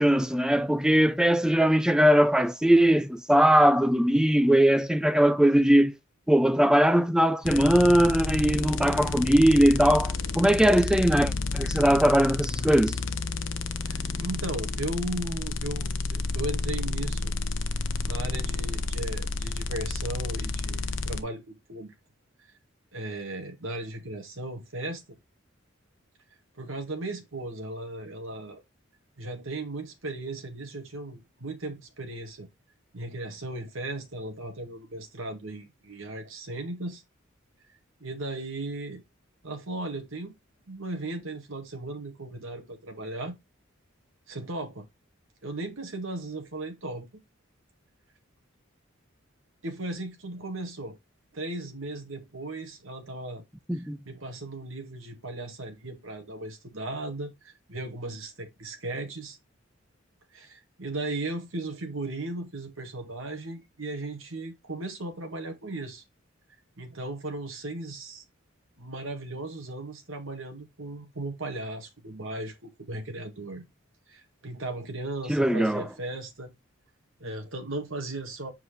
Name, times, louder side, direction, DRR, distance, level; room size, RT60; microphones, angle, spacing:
voice 1, 0.0-5.9 6.3-12.9 53.7-54.0 75.3-75.9, right 1 dB, 5° right, 0.5 m, -20 dB
sound 1, 7.4-21.2, left 3 dB, 65° left, 0.8 m, -30 dB
voice 2, 13.8-17.3 18.0-21.9 22.4-22.5 22.9-25.0 26.5-28.6 29.2-32.5 32.9-37.0 38.0-39.0 39.4-40.3 40.7-43.4 44.3-44.9 45.4-47.1 49.6-51.0 51.3-53.4 53.7-59.4 60.3-66.0 66.8-68.2 68.8-73.6 74.1-76.5 77.2-78.5, right 2 dB, 75° right, 2.0 m, -36 dB
7.7 x 4.7 x 3.3 m
head